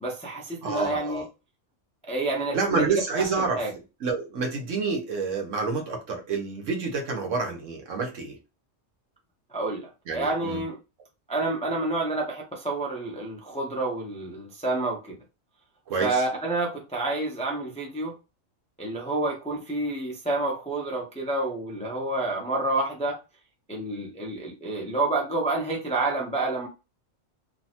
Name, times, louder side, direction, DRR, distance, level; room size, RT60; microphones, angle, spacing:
voice 1, 0.0-1.2 2.1-3.7 9.5-10.8 11.3-15.2 16.0-18.1 18.8-23.2 23.7-26.7, right 2 dB, 10° left, 0.3 m, -29 dB
voice 2, 0.6-1.2 2.5-3.6 4.0-8.4 10.1-10.6 15.9-16.2, right 4 dB, 70° right, 1.2 m, -28 dB
3.1 x 2.1 x 2.8 m
omnidirectional pair, 1.3 m